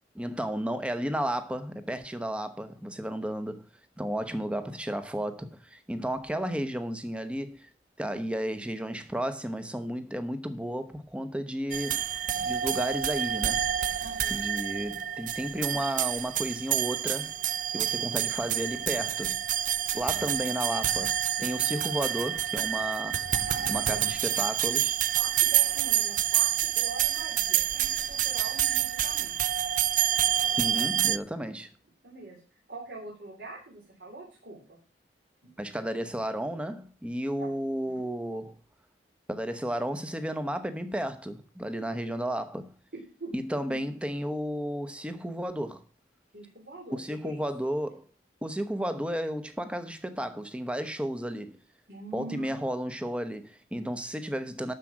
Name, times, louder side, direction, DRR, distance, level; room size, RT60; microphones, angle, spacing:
voice 1, 0.1-3.6 4.0-7.7 8.0-13.7 14.3-17.3 17.7-19.4 19.9-23.2 23.7-25.0 30.6-31.7 35.6-38.6 39.3-42.7 43.3-45.8 46.9-48.0 48.4-51.6 52.1-54.7, equal, 5° right, 0.9 m, -33 dB
sound 1, 11.7-31.2, right 11 dB, 50° right, 0.5 m, -28 dB
voice 2, 14.0-14.4 20.0-20.5 23.3-24.0 25.1-29.4 31.5-31.6 32.0-32.4 32.7-34.8 35.4-35.5 37.4-37.5 37.9-38.1 42.9-43.3 43.7-43.9 46.3-47.4 51.9-52.5, right 2 dB, 65° right, 3.6 m, -43 dB
12.0 x 4.9 x 7.4 m
head